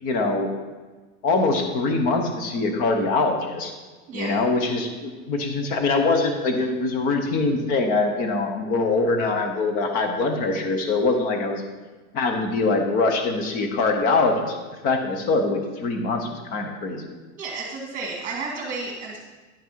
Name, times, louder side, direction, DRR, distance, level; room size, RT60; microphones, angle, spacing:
voice 1, 0.0-0.5 1.2-3.8 4.1-11.6 12.1-14.6 14.8-17.2, left 3 dB, 20° left, 5 dB, 0.7 m, -23 dB
voice 2, 4.1-4.4 17.3-19.2, right 4 dB, 20° right, -1 dB, 1.9 m, -32 dB
10.0 x 5.9 x 4.5 m, 1.3 s
supercardioid pair, 175°, 42 cm